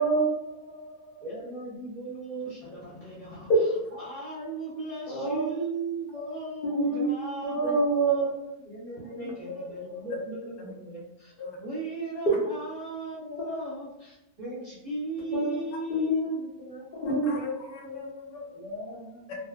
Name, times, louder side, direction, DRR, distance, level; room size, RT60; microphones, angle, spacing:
voice 1, 0.0-1.2 3.5-3.6 5.1-5.5 6.6-7.2 7.4-8.3 13.5-13.6 15.3-15.6 15.9-16.2 16.9-17.2, right 2 dB, 65° left, -6 dB, 0.5 m, -26 dB
voice 2, 1.2-3.5 3.9-8.3 8.6-17.2 18.6-19.3, right 2 dB, 40° right, -10 dB, 0.5 m, -37 dB
voice 3, 9.0-9.3 10.1-10.2 10.6-10.7 11.4-11.6 17.0-18.6 19.3-19.4, left 2 dB, 80° left, 0 dB, 1.1 m, -37 dB
2.5 x 2.2 x 2.3 m, 0.89 s
omnidirectional pair, 1.5 m